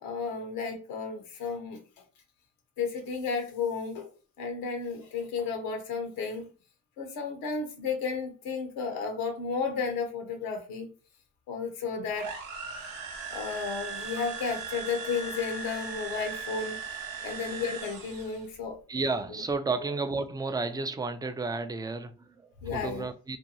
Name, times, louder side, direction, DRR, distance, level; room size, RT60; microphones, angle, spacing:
voice 1, 0.0-1.8 2.8-4.1 4.4-6.5 7.0-10.9 11.5-12.3 13.3-16.8 17.2-18.8 22.6-23.1, left 5 dB, 90° left, 0.7 m, -33 dB
sound 1, 12.1-18.5, right 5 dB, 80° right, 0.6 m, -38 dB
voice 2, 18.9-23.4, right 3 dB, 10° right, 0.3 m, -32 dB
2.5 x 2.2 x 2.8 m
supercardioid pair, 45°, 34 cm